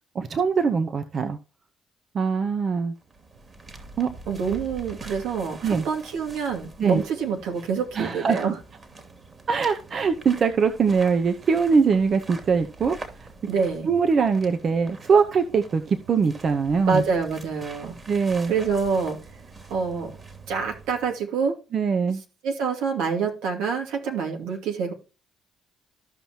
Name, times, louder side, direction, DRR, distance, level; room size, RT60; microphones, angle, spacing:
voice 1, 0.1-1.4 2.1-2.9 4.0-4.1 5.6-5.9 6.8-7.0 7.9-8.4 9.5-13.0 13.9-17.0 18.1-18.5 21.7-22.2, right 5 dB, 50° right, 8 dB, 0.9 m, -22 dB
sound 1, 2.9-21.2, right 3 dB, 35° right, 2.7 m, -44 dB
voice 2, 4.3-8.6 13.5-13.9 16.9-18.0 18.5-19.2 19.7-20.1 20.5-21.6 22.4-24.9, right 5 dB, 80° right, 2 dB, 2.4 m, -26 dB
14.0 x 5.6 x 2.9 m, 0.31 s
supercardioid pair, 65°, 0 cm